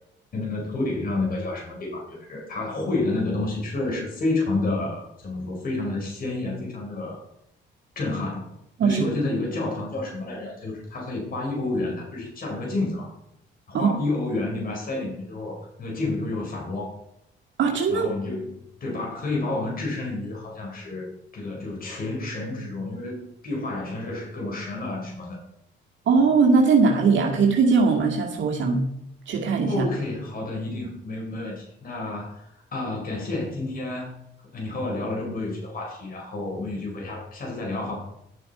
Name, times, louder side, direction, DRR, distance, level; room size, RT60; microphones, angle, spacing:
voice 1, 0.3-7.2 7.9-8.5 8.8-13.1 13.7-16.9 17.9-21.1 21.3-25.4 29.7-34.2 34.5-38.0, left 2 dB, 45° left, -1 dB, 4.5 m, -30 dB
voice 2, 17.6-18.1 26.1-28.9 29.3-29.8, right 4 dB, 70° right, 0 dB, 2.1 m, -20 dB
11.5 x 7.6 x 4.3 m, 0.79 s
cardioid pair, 90°, 20 cm